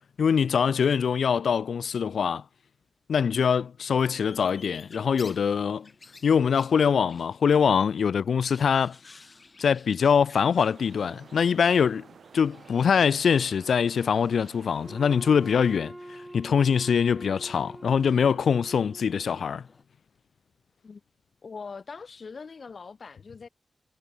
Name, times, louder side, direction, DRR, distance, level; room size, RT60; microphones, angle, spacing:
voice 1, 0.2-2.4 3.1-5.9 6.2-9.0 9.6-12.0 12.3-15.9 16.3-19.6, left 7 dB, 90° left, 0.3 m, -23 dB
sound 1, 4.1-19.8, left 3 dB, 40° left, 1.7 m, -55 dB
sound 2, 10.7-15.8, right 6 dB, 85° right, 4.3 m, -51 dB
Wind instrument woodwind instrument, 14.8-19.5, right 1 dB, 10° right, 1.5 m, -44 dB
voice 2, 21.4-23.5, left 5 dB, 60° left, 0.7 m, -42 dB
wide cardioid pair, 95°, 0 cm